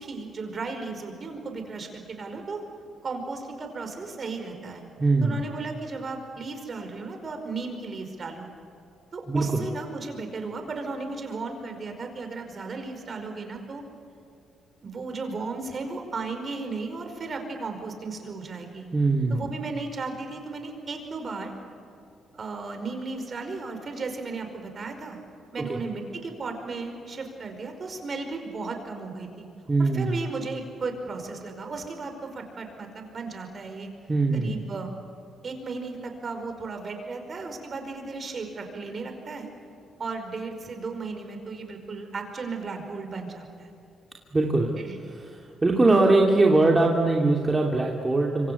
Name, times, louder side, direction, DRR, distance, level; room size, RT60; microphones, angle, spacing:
voice 1, 0.0-2.6 3.0-4.8 5.2-8.5 9.1-13.8 14.8-18.9 19.3-21.5 22.3-25.2 25.5-29.5 29.8-33.9 34.3-34.9 35.4-39.5 40.0-43.7 44.8-45.0, right 3 dB, 40° right, 5 dB, 5.1 m, -35 dB
voice 2, 5.0-5.4 9.3-9.6 18.9-19.5 25.6-25.8 29.7-30.2 34.1-34.6 44.3-44.7 45.0-48.5, right 2 dB, 20° right, -1 dB, 2.6 m, -22 dB
25.5 x 25.5 x 8.4 m, 2.6 s
cardioid pair, 90°, 0 cm